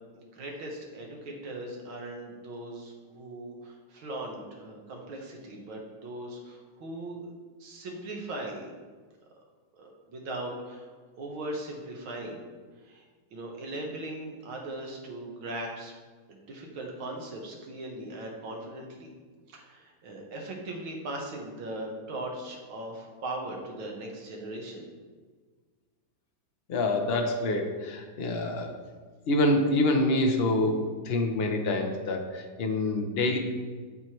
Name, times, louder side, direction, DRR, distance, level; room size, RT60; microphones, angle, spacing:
voice 1, 0.2-7.3 7.6-8.7 9.8-10.9 11.2-12.4 12.9-13.0 13.3-15.9 16.3-19.1 19.5-24.9, right 1 dB, 90° right, 0 dB, 2.1 m, -39 dB
voice 2, 26.7-28.7 29.3-33.4, left 2 dB, 80° left, 3 dB, 0.5 m, -26 dB
13.0 x 4.4 x 3.1 m, 1.5 s
omnidirectional pair, 2.2 m